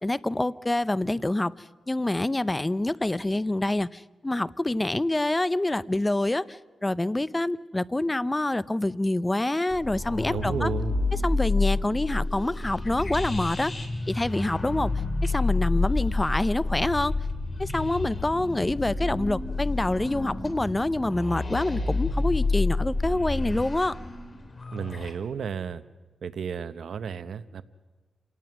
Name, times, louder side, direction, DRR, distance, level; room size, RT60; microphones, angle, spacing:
voice 1, 0.0-1.5 1.9-10.7 11.2-13.7 14.1-14.9 15.2-17.1 17.6-24.0, left 1 dB, 15° left, 17 dB, 0.6 m, -26 dB
sound 1, 9.7-25.1, left 3 dB, 35° left, 3.0 m, -29 dB
voice 2, 10.3-11.0 24.7-25.8 26.2-27.6, right 7 dB, 75° right, 12 dB, 0.8 m, -32 dB
27.0 x 18.5 x 6.1 m, 1.3 s
cardioid pair, 85°, 0 cm